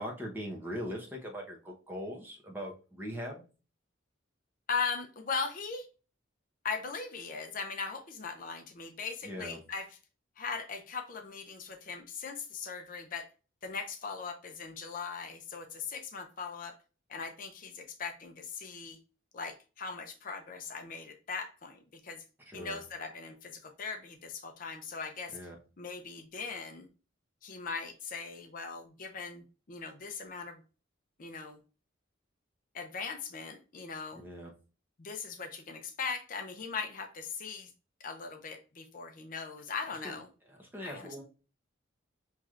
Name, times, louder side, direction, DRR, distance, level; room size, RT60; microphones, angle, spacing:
voice 1, 0.0-3.4 9.2-9.6 22.5-22.8 25.3-25.5 34.1-34.5 40.0-40.1 40.6-41.2, equal, 10° right, 0 dB, 0.8 m, -40 dB
voice 2, 4.7-5.9 6.6-9.9 10.4-13.3 13.6-16.8 17.1-19.0 19.3-22.2 22.5-25.4 25.8-26.9 27.4-30.6 31.2-31.6 32.7-34.2 35.0-37.7 38.0-40.3 40.8-41.1, left 5 dB, 45° left, 5 dB, 0.5 m, -39 dB
5.8 x 3.1 x 2.4 m, 0.35 s
head